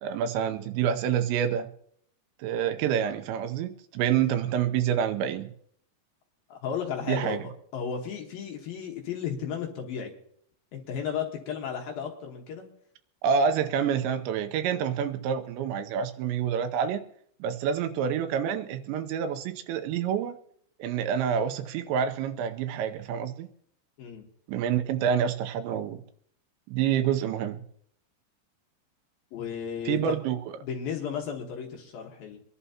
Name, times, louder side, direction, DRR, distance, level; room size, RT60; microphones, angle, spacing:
voice 1, 0.0-1.7 2.4-5.5 7.1-7.4 13.2-17.0 17.4-20.3 20.8-23.5 24.5-26.0 26.7-27.6 29.9-30.4, right 8 dB, 80° right, 9 dB, 3.0 m, -27 dB
voice 2, 6.5-7.4 7.7-10.1 10.7-12.7 24.0-24.3 29.3-30.2 30.6-32.4, left 7 dB, 65° left, 1 dB, 2.7 m, -34 dB
25.0 x 11.5 x 2.9 m, 0.66 s
omnidirectional pair, 5.3 m